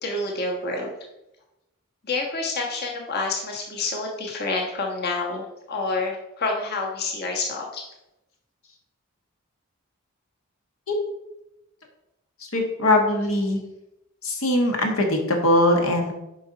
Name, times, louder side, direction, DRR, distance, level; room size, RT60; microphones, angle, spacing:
voice 1, 0.0-0.9 2.1-7.8, left 3 dB, 50° left, 0 dB, 1.2 m, -28 dB
voice 2, 12.5-13.6 14.2-16.1, left 1 dB, 80° left, 2 dB, 1.5 m, -21 dB
9.2 x 5.3 x 4.0 m, 0.91 s
head